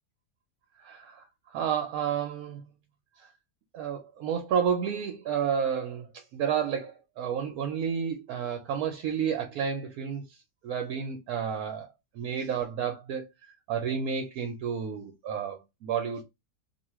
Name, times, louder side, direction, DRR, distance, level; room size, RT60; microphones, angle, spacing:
voice 1, 0.8-2.6 3.2-3.3 3.7-10.2 10.6-11.9 12.1-13.3 13.7-16.2, right 7 dB, 70° right, 1.0 m, -31 dB
2.7 x 2.3 x 3.0 m
omnidirectional pair, 1.7 m